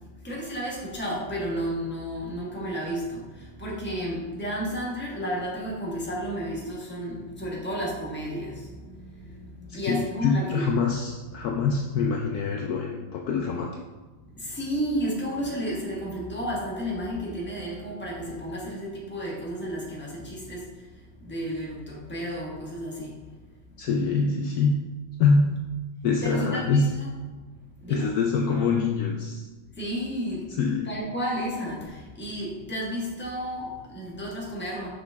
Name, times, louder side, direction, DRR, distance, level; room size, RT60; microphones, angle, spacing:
voice 1, 0.2-10.8 14.3-20.7 21.2-23.1 26.2-27.1 27.8-28.1 29.8-30.5 30.8-34.9, equal, 5° left, -4 dB, 1.0 m, -32 dB
voice 2, 9.8-13.7 23.8-24.7 25.2-25.5 26.0-26.8 27.9-29.5 30.5-30.9, left 4 dB, 85° left, 1 dB, 0.8 m, -24 dB
5.9 x 5.2 x 3.4 m, 1.3 s
omnidirectional pair, 2.2 m